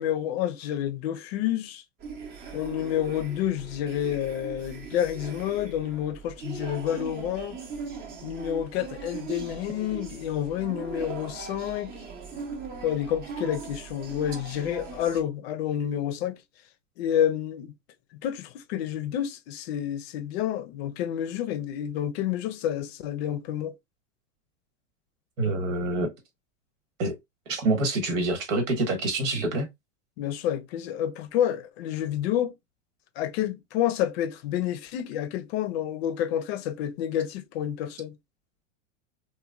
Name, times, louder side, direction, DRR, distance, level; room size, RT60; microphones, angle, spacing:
voice 1, 0.0-1.8 2.5-7.6 8.2-11.9 12.8-16.4 17.0-17.7 18.1-23.7 30.2-32.5 33.2-38.2, left 10 dB, 55° left, 0.5 m, -29 dB
sound 1, 2.0-15.2, right 5 dB, 25° right, 0.6 m, -40 dB
voice 2, 25.4-26.1 27.0-27.1 27.5-29.7, right 2 dB, 85° right, 1.3 m, -26 dB
3.1 x 2.2 x 2.2 m
supercardioid pair, 135°, 37 cm